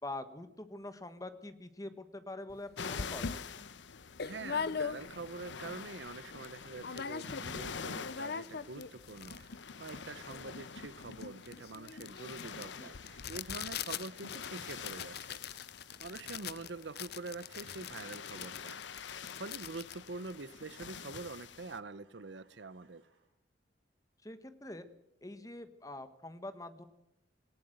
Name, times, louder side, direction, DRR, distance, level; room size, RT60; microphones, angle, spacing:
voice 1, 0.0-3.4 12.7-12.9 24.2-24.9 25.2-26.8, left 2 dB, 20° left, 1.4 m, -45 dB
sound 1, 2.5-2.6 3.0-5.4 5.8-5.9 6.0-6.5 6.8-7.6 7.9-21.0, left 6 dB, 55° left, 0.7 m, -42 dB
sound 2, 2.8-21.8, left 6 dB, 75° left, 0.9 m, -47 dB
voice 2, 4.2-15.4 16.0-18.8 19.1-23.0, right 3 dB, 70° right, 0.9 m, -45 dB
sound 3, 9.3-10.9 12.0-14.5 15.5-19.4 20.1-23.4, right 4 dB, 90° right, 3.7 m, -69 dB
19.0 x 17.5 x 7.9 m
head